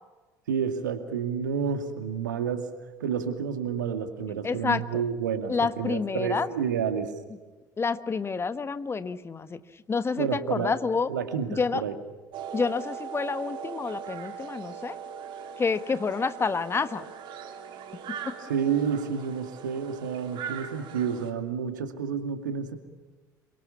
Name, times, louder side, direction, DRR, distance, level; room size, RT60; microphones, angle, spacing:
voice 1, 0.5-2.7 3.0-7.1 10.2-10.7 11.1-12.0 18.5-22.8, right 7 dB, 75° right, 8 dB, 2.3 m, -29 dB
voice 2, 4.4-5.0 5.5-6.5 7.8-9.6 9.9-11.1 11.6-11.8 12.5-15.0 15.6-17.1 18.2-18.3, left 5 dB, 25° left, 13 dB, 1.3 m, -28 dB
sound 1, 12.3-21.3, right 7 dB, 50° right, 3.0 m, -40 dB
27.5 x 24.5 x 7.3 m, 1.3 s
figure-of-eight pair, 60°, 10 cm